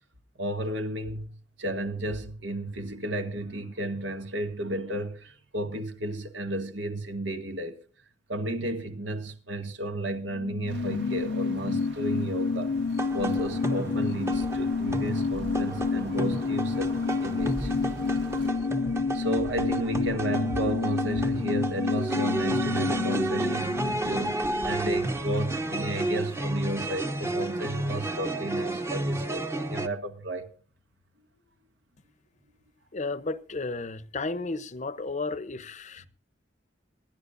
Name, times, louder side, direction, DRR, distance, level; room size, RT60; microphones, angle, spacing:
voice 1, 0.4-7.8 8.3-12.7 13.1-17.7 19.1-30.5, right 1 dB, 85° right, 1.9 m, -33 dB
sound 1, 10.2-25.3 25.6-25.7, left 4 dB, 80° left, 0.5 m, -29 dB
sound 2, 10.7-18.5, right 2 dB, 70° right, 1.9 m, -45 dB
sound 3, 13.0-29.9, right 1 dB, 15° right, 0.9 m, -32 dB
voice 2, 32.9-36.1, left 3 dB, 40° left, 0.7 m, -33 dB
27.0 x 10.5 x 2.6 m
head